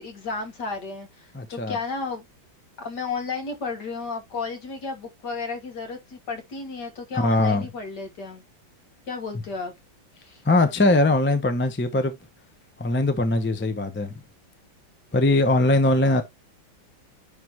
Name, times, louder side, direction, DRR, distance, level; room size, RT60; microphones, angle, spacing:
voice 1, 0.0-2.2 2.8-8.4 9.1-9.7 10.2-10.4, left 4 dB, 60° left, 2.3 m, -33 dB
voice 2, 1.3-1.8 7.1-7.7 10.4-12.2 12.8-14.1 15.1-16.2, left 2 dB, 10° left, 0.6 m, -21 dB
10.0 x 3.7 x 3.1 m
omnidirectional pair, 2.1 m